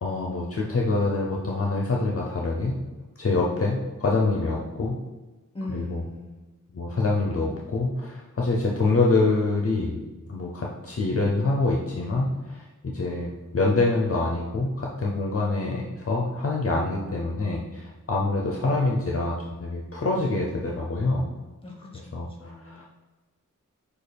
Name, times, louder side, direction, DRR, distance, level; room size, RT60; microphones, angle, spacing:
voice 1, 0.0-2.8 3.2-4.9 5.7-6.0 6.7-10.0 10.3-21.3 22.1-22.8, left 3 dB, 45° left, -2 dB, 0.6 m, -25 dB
voice 2, 5.5-6.4 21.6-22.1 22.4-22.8, left 2 dB, 15° left, 0 dB, 1.1 m, -39 dB
6.5 x 2.4 x 3.3 m, 1.2 s
wide cardioid pair, 70°, 32 cm